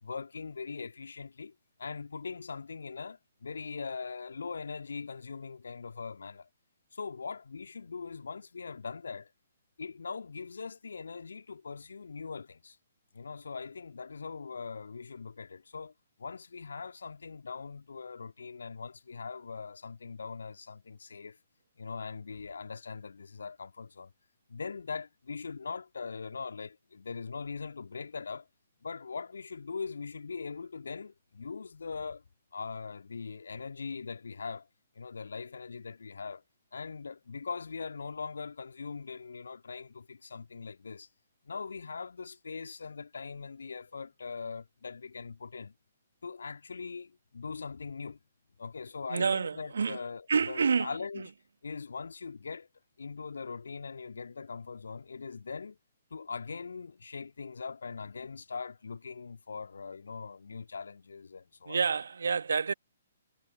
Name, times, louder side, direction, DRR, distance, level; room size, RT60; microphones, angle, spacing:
voice 1, 0.0-6.5 6.9-9.3 9.8-12.8 13.1-15.9 16.2-21.4 21.8-24.1 24.5-28.5 28.8-32.2 32.5-34.7 35.0-36.4 36.7-41.1 41.5-45.7 46.2-48.2 48.6-51.3 51.6-52.7 53.0-55.8 56.1-61.8, left 5 dB, 65° left, 2.4 m, -41 dB
voice 2, 49.1-50.0 50.3-50.9 51.2-51.3 61.7-62.7, right 5 dB, 60° right, 1.8 m, -28 dB
figure-of-eight pair, 125°, 0 cm